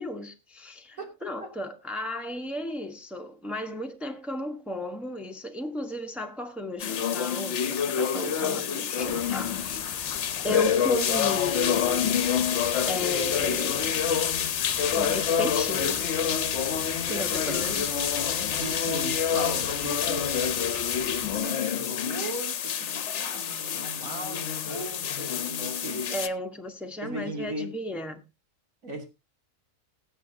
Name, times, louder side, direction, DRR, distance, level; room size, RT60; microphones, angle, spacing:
voice 1, 0.0-9.8 10.4-12.2 12.9-13.9 14.9-16.0 17.1-17.9 26.1-28.2, left 1 dB, ahead, 1.1 m, -34 dB
sound 1, 6.8-26.3, left 8 dB, 60° left, 1.1 m, -27 dB
sound 2, 9.0-21.4, left 3 dB, 30° left, 1.7 m, -44 dB
sound 3, 12.3-17.9, left 3 dB, 25° right, 4.3 m, -54 dB
voice 2, 16.9-17.8 18.6-20.5 21.2-26.0 27.0-27.7 28.8-29.1, right 2 dB, 90° right, 3.3 m, -38 dB
19.5 x 7.9 x 2.8 m
omnidirectional pair, 1.4 m